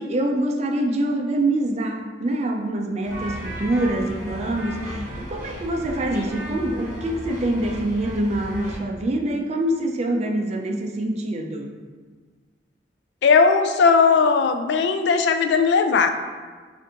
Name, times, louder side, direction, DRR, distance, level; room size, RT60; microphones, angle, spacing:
voice 1, 0.0-11.7, right 1 dB, 35° right, 3 dB, 0.4 m, -25 dB
sound 1, 3.0-8.8, right 1 dB, 15° right, 1.3 m, -35 dB
voice 2, 13.2-16.1, left 5 dB, 65° left, 8 dB, 0.3 m, -18 dB
6.9 x 2.5 x 2.8 m, 1.5 s
head